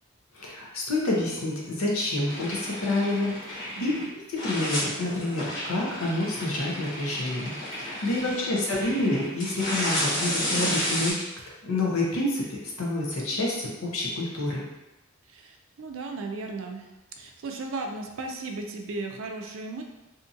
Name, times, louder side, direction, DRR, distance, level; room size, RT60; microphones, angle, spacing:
voice 1, 0.3-11.3 11.6-14.7, left 2 dB, 85° left, -2 dB, 0.7 m, -28 dB
sound 1, 2.2-4.1 4.4-11.1, equal, 60° left, 1.2 m, -32 dB
voice 2, 3.8-4.1 15.3-16.9 17.2-19.8, right 3 dB, 70° right, 3 dB, 0.4 m, -36 dB
2.7 x 2.5 x 2.5 m, 1.0 s
head